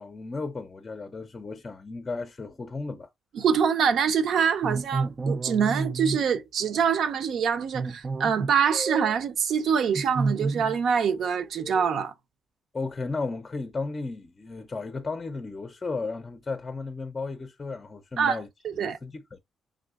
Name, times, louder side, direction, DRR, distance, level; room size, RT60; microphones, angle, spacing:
voice 1, 0.0-3.1 12.7-18.5 18.8-19.4, left 3 dB, 30° left, 0.5 m, -34 dB
voice 2, 3.3-12.1 18.2-18.4 18.6-19.0, right 7 dB, 65° right, 0.7 m, -25 dB
sound 1, 4.6-6.2 6.7-7.0 7.7-9.2 9.9-10.8 11.1-12.0, right 4 dB, 35° right, 0.3 m, -30 dB
3.6 x 2.7 x 2.3 m
cardioid pair, 90°, 0 cm